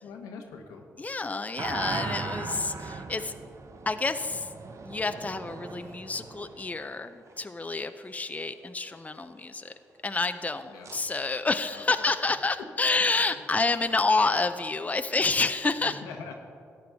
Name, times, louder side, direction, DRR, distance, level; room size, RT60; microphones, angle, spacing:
voice 1, 0.0-0.9 10.6-10.9 11.7-12.2 12.6-12.7 15.8-16.3, left 5 dB, 85° left, 3 dB, 1.0 m, -43 dB
voice 2, 1.0-3.3 3.9-4.5 4.8-9.7 10.0-16.0, left 3 dB, 25° left, 9 dB, 0.5 m, -28 dB
sound 1, 1.6-7.4 10.8-11.0, right 4 dB, 55° right, 0.9 m, -38 dB
14.5 x 8.9 x 3.5 m, 2.3 s
supercardioid pair, 45°, 6 cm